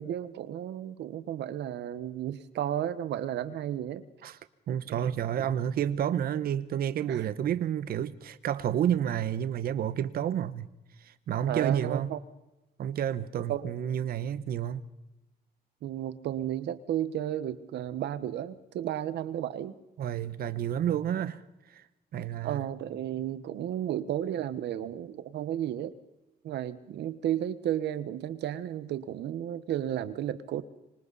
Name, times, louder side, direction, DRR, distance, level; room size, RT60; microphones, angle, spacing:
voice 1, 0.0-4.0 4.9-5.2 7.1-7.3 11.5-12.2 13.5-13.7 15.8-19.7 22.4-25.9 26.4-30.6, right 11 dB, 85° right, 1.3 m, -33 dB
voice 2, 4.7-10.7 11.3-12.1 12.8-14.8 20.0-21.4 22.1-22.7, right 10 dB, 60° right, 1.0 m, -30 dB
25.5 x 25.0 x 4.1 m
cardioid pair, 175°, 17 cm